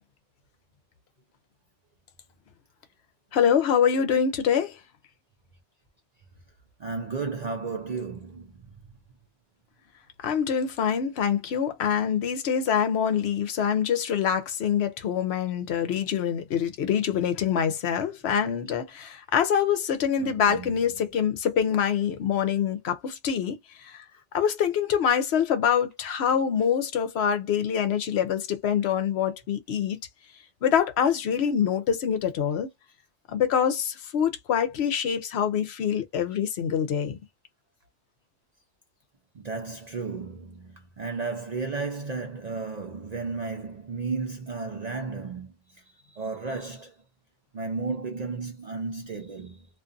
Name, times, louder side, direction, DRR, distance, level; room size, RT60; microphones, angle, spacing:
voice 1, 3.3-4.8 10.2-24.0 24.3-30.0 30.6-32.7 33.3-37.2, left 8 dB, 70° left, 0.8 m, -25 dB
voice 2, 6.8-8.6 20.2-20.9 26.6-26.7 31.6-31.7 36.3-36.4 39.3-47.0 47.5-49.7, right 4 dB, 55° right, 0.5 m, -34 dB
2.5 x 2.4 x 2.5 m
omnidirectional pair, 1.2 m